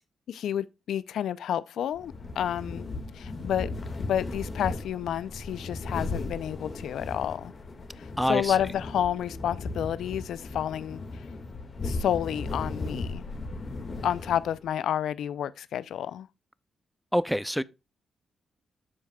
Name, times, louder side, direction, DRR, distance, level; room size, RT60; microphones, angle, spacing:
voice 1, 0.3-2.8 3.1-3.7 4.1-7.5 8.0-11.2 11.8-13.2 14.0-16.3, left 10 dB, 85° left, 0.4 m, -30 dB
sound 1, 1.9-14.7, left 3 dB, 50° left, 1.8 m, -36 dB
voice 2, 8.2-8.5 17.1-17.6, equal, ahead, 0.5 m, -26 dB
13.5 x 4.8 x 2.3 m
cardioid pair, 65°, 0 cm